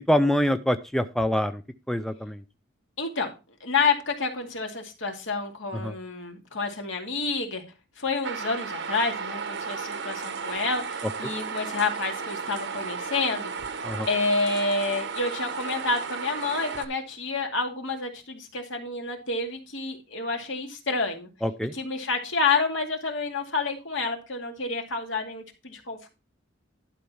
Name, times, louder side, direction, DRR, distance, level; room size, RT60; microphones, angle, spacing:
voice 1, 0.1-1.6 1.9-2.4 5.8-5.9 13.8-14.1 21.4-21.7, equal, ahead, 9 dB, 0.4 m, -25 dB
voice 2, 3.0-3.3 3.6-7.6 8.0-13.5 14.1-21.3 21.7-26.1, left 4 dB, 70° left, 3 dB, 2.4 m, -29 dB
sound 1, 8.2-16.8, right 5 dB, 60° right, 1.0 m, -34 dB
11.5 x 4.5 x 5.5 m, 0.29 s
head